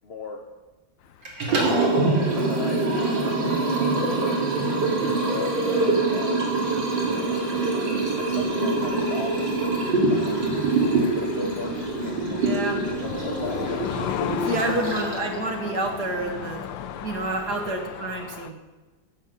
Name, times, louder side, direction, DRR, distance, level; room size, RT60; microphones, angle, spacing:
voice 1, 0.0-0.5 1.6-1.9 2.3-3.1 4.8-6.5 7.1-7.5 8.2-10.5 10.9-13.9 14.2-14.3 14.8-15.2 17.6-17.8, left 3 dB, 50° left, 2 dB, 0.7 m, -38 dB
sound 1, 1.0-18.5, left 10 dB, 90° left, 1.4 m, -37 dB
Liquid, 1.3-15.3, right 3 dB, 80° right, 2.8 m, -24 dB
voice 2, 12.3-12.8 14.4-16.6 17.0-18.6, right 2 dB, 60° right, 2 dB, 2.0 m, -28 dB
14.5 x 6.3 x 5.4 m, 1.3 s
omnidirectional pair, 2.0 m